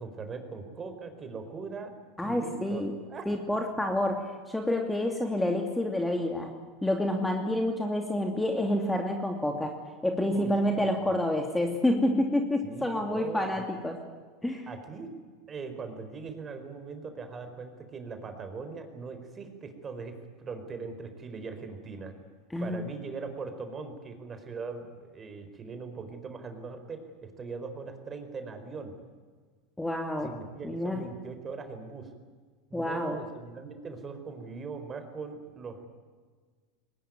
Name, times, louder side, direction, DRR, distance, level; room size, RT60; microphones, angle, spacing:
voice 1, 0.0-1.9 2.2-2.8 3.1-3.3 10.2-11.1 12.6-13.6 14.7-15.1 15.5-22.1 22.6-28.9 30.2-32.1 32.7-35.9, right 4 dB, 25° right, 8 dB, 4.6 m, -40 dB
voice 2, 2.2-2.9 3.3-6.5 6.8-9.7 10.0-14.0 14.4-14.7 22.5-22.8 29.8-30.3 30.6-31.0 32.7-33.2, left 1 dB, 5° left, 3 dB, 2.7 m, -28 dB
22.0 x 19.5 x 9.5 m, 1.5 s
hypercardioid pair, 85°, 0 cm